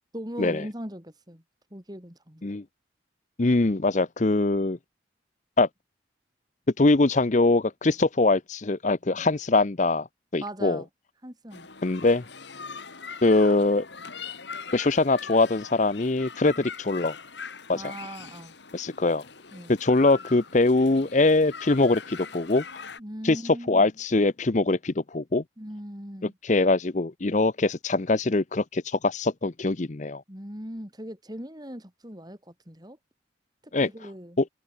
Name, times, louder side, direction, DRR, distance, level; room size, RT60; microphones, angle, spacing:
voice 1, 0.1-1.4 1.7-2.4 10.4-10.9 11.2-11.7 17.7-18.5 19.5-19.7 23.0-23.9 25.6-26.3 30.3-33.0 33.6-34.4, equal, 20° right, 4.4 m, -39 dB
voice 2, 3.4-4.8 5.6-5.7 6.8-10.1 10.3-10.8 11.8-12.3 13.2-13.9 14.7-17.2 17.7-17.9 18.7-19.2 19.7-22.8 23.2-25.4 26.2-30.2 33.7-33.9 34.4-34.5, left 2 dB, 40° left, 0.7 m, -23 dB
sound 1, 11.5-23.0, left 5 dB, 65° left, 2.1 m, -42 dB
open air
head